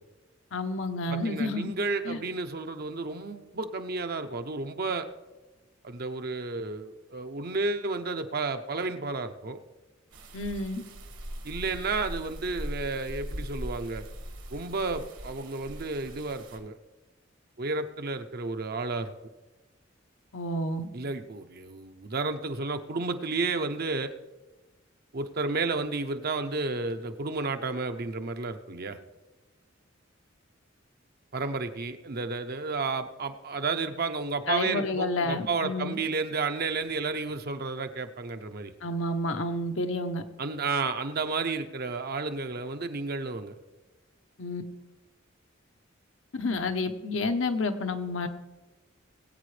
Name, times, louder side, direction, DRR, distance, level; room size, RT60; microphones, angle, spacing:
voice 1, 0.5-1.7 2.0-2.2 10.3-10.8 20.3-20.9 34.5-36.0 38.8-40.2 44.4-44.6 46.3-48.3, left 2 dB, 70° left, 7 dB, 0.9 m, -30 dB
voice 2, 1.1-5.1 5.8-9.6 11.4-14.1 14.5-16.8 17.6-19.1 20.9-24.1 25.1-29.0 31.3-38.7 40.4-43.5, right 3 dB, 50° right, 8 dB, 0.7 m, -32 dB
sound 1, 10.1-16.6, equal, 70° right, 1.7 m, -40 dB
20.5 x 8.5 x 3.3 m, 1.2 s
head